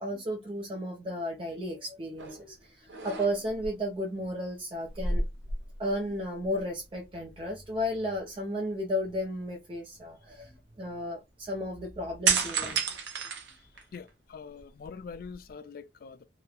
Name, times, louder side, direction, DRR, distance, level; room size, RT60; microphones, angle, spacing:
voice 1, 0.0-5.2 5.8-12.9, equal, 30° right, 0.5 m, -34 dB
sound 1, 2.2-2.5 2.9-3.7 4.9-6.1 6.4-6.6 12.2-14.1 14.6-15.5, right 4 dB, 70° right, 0.7 m, -31 dB
voice 2, 13.9-16.3, left 5 dB, 50° left, 0.3 m, -44 dB
2.9 x 2.0 x 2.3 m
head